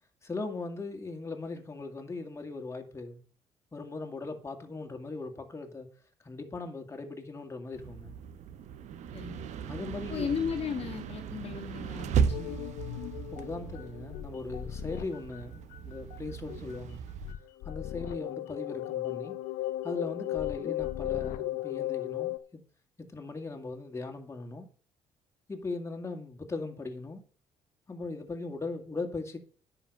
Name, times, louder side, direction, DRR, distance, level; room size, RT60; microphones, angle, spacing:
voice 1, 0.2-3.2 3.7-5.9 6.2-8.1 9.7-10.3 13.3-17.0 17.6-19.4 19.8-22.6 23.0-24.7 25.5-27.2 27.9-29.4, left 3 dB, 20° left, 2.2 m, -39 dB
sound 1, 7.7-17.3, right 7 dB, 65° right, 1.0 m, -36 dB
voice 2, 9.1-9.5 10.1-12.6 20.6-20.7, left 7 dB, 55° left, 1.7 m, -35 dB
sound 2, 12.2-15.4 15.7-16.2 16.5-22.4, left 15 dB, 85° left, 0.9 m, -36 dB
10.0 x 5.9 x 6.6 m
supercardioid pair, 85°, 13 cm